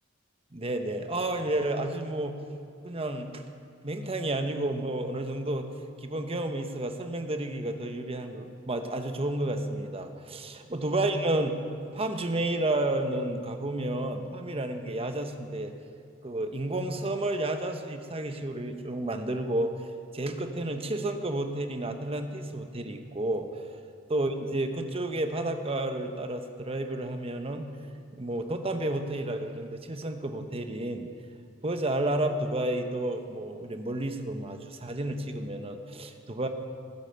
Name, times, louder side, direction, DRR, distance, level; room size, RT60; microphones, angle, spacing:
voice 1, 0.5-2.4 2.8-3.4 3.8-5.7 6.0-11.6 11.9-15.7 16.2-19.7 20.1-23.5 24.1-27.7 28.2-31.1 31.6-36.5, right 1 dB, 30° right, 6 dB, 1.0 m, -31 dB
16.0 x 10.0 x 6.8 m, 2.4 s
head